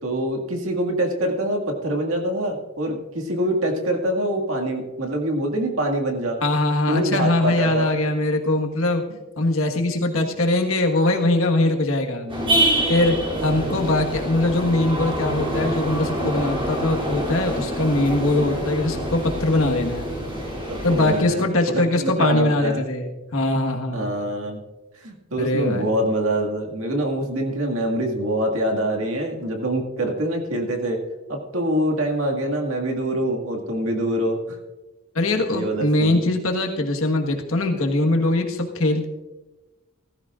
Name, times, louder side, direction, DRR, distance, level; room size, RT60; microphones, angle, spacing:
voice 1, 0.0-6.4 6.9-7.9 10.1-10.2 12.2-12.7 13.3-13.8 20.7-21.4 21.7-22.8 23.9-24.6 24.9-31.0 31.3-34.6 35.5-36.2, right 1 dB, 75° right, 1 dB, 2.0 m, -25 dB
voice 2, 6.4-9.0 9.4-12.3 12.9-20.1 20.8-24.1 25.4-25.9 35.1-39.1, left 2 dB, 70° left, 3 dB, 1.5 m, -22 dB
sound 1, 12.3-21.2, right 1 dB, 25° right, 3.0 m, -26 dB
16.5 x 14.5 x 2.5 m, 1.1 s
head